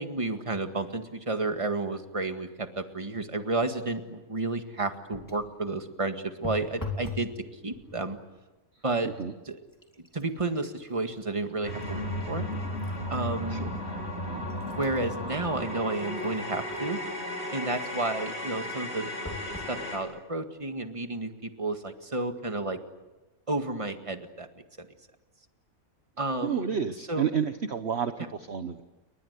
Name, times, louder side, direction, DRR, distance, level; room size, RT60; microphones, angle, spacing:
voice 1, 0.0-7.3 7.6-8.2 8.8-9.1 9.5-9.6 10.1-12.5 13.1-13.8 14.6-17.0 17.5-19.1 19.7-22.8 23.5-24.5 26.2-26.8 27.1-27.3, right 2 dB, 20° right, 7 dB, 1.9 m, -31 dB
sound 1, 5.1-5.5 6.4-7.3 7.7-8.2 8.9-9.1 9.5-13.0 13.5-13.6 14.3-17.0 19.2-19.8 20.4-20.5 20.8-20.9, left 3 dB, 15° left, 3.0 m, -43 dB
sound 2, 11.6-20.0, left 1 dB, 50° left, 5.9 m, -34 dB
voice 2, 26.4-28.8, right 7 dB, 50° right, 8 dB, 1.3 m, -31 dB
29.5 x 23.5 x 8.2 m, 1.1 s
omnidirectional pair, 1.5 m